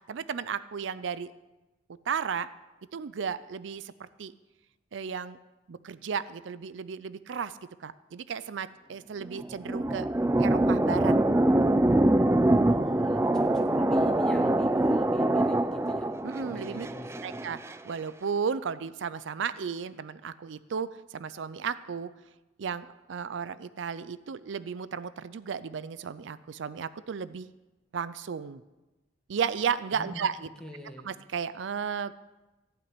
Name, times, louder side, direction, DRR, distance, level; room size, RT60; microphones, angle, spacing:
voice 1, 0.1-1.3 2.1-2.5 2.9-4.3 4.9-5.4 5.7-7.5 7.8-10.1 10.4-11.1 16.2-16.9 17.2-22.1 22.6-27.5 27.9-28.6 29.3-30.5 31.0-32.3, right 6 dB, 80° right, 15 dB, 0.4 m, -34 dB
sound 1, 9.2-17.8, right 1 dB, 15° right, 0.4 m, -24 dB
voice 2, 12.7-16.1 16.4-17.4 29.9-30.3 30.6-31.1, equal, 5° left, 1 dB, 1.7 m, -43 dB
15.0 x 5.9 x 9.7 m, 1.1 s
head